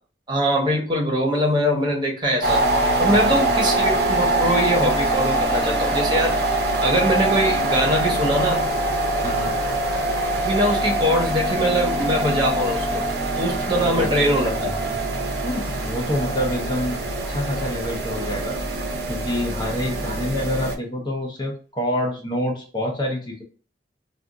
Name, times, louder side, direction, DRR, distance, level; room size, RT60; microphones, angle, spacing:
voice 1, 0.3-2.6 3.0-6.4 6.8-8.6 10.4-13.0 13.4-15.0, equal, 25° right, -1 dB, 0.9 m, -22 dB
sound 1, 2.4-20.8, right 2 dB, 70° right, 0.6 m, -24 dB
sound 2, 3.1-13.1, left 3 dB, 90° left, 0.5 m, -29 dB
voice 2, 3.1-3.4 9.2-9.6 13.8-14.1 15.4-17.0 17.3-18.6 19.1-23.4, left 1 dB, 25° left, 0 dB, 0.6 m, -27 dB
2.5 x 2.3 x 3.5 m, 0.39 s
head